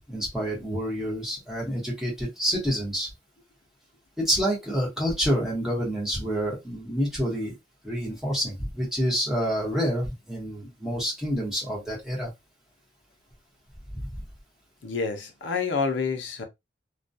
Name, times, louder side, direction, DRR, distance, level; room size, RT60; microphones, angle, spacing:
voice 1, 0.1-3.1 4.2-7.5 7.8-12.3 13.9-14.2, equal, ahead, 0.9 m, -28 dB
voice 2, 14.8-16.4, left 5 dB, 80° left, 0.6 m, -28 dB
2.3 x 2.2 x 2.6 m
head